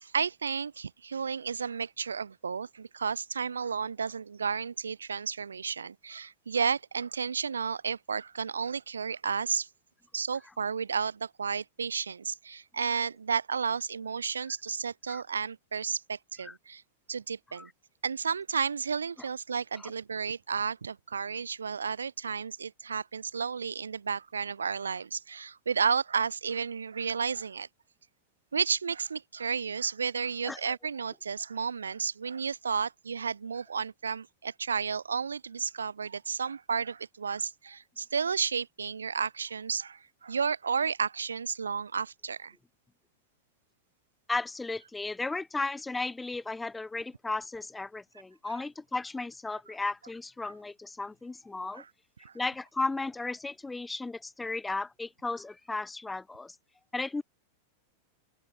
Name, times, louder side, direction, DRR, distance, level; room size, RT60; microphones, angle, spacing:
voice 1, 0.0-9.7 10.1-16.8 17.1-17.7 18.0-27.7 28.5-42.5 51.7-51.9 52.2-52.3, right 6 dB, 70° right, 0.6 m, -32 dB
voice 2, 44.3-51.8 52.3-56.6 56.9-57.2, left 3 dB, 10° left, 3.0 m, -35 dB
open air
figure-of-eight pair, 90°, 0 cm